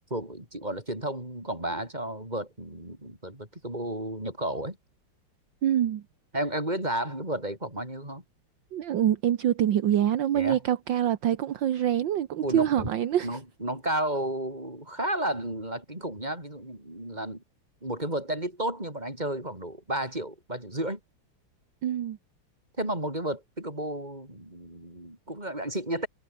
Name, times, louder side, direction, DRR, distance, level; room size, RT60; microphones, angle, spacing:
voice 1, 0.1-4.8 6.3-8.2 10.3-10.6 12.4-12.9 13.2-17.4 17.8-21.0 22.8-26.1, right 1 dB, 20° right, 7.3 m, -32 dB
voice 2, 5.6-6.0 8.7-13.3 21.8-22.2, right 11 dB, 65° right, 1.7 m, -25 dB
omnidirectional pair, 2.3 m